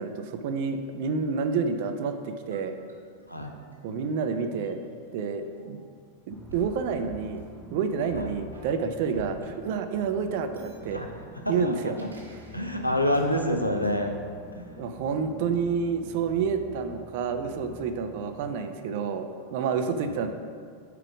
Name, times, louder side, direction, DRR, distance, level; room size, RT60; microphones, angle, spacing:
voice 1, 0.0-2.8 3.8-4.8 5.1-5.8 6.3-7.4 7.7-11.0 11.5-11.9 14.7-20.3, right 5 dB, 50° right, 7 dB, 0.5 m, -29 dB
sound 1, 2.5-6.0 6.5-9.5 10.4-13.3 13.8-13.9, right 2 dB, 80° right, 1.5 m, -49 dB
sound 2, 6.3-18.6, equal, 5° left, 0.6 m, -48 dB
voice 2, 11.4-12.1 12.5-14.1 14.5-14.8 20.1-20.2, left 1 dB, 90° left, 3 dB, 0.6 m, -28 dB
4.8 x 4.6 x 5.9 m, 2.1 s
figure-of-eight pair, 90°, 0 cm